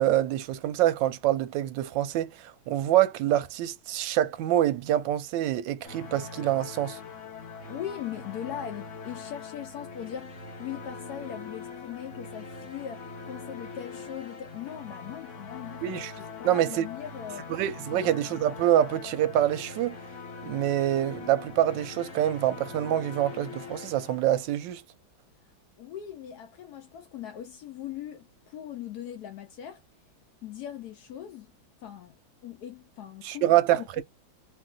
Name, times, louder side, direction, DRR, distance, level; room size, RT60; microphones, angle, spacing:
voice 1, 0.0-7.0 15.8-16.1 16.4-16.9 17.5-20.0 20.5-24.8 33.2-33.8, right 12 dB, 75° right, 1.2 m, -26 dB
sound 1, 5.8-24.8, left 4 dB, 50° left, 1.0 m, -42 dB
voice 2, 7.7-17.5 17.9-18.2 25.8-29.8 30.4-31.5 31.8-32.2 32.4-34.0, left 10 dB, 75° left, 0.9 m, -40 dB
3.1 x 2.4 x 2.3 m
omnidirectional pair, 2.2 m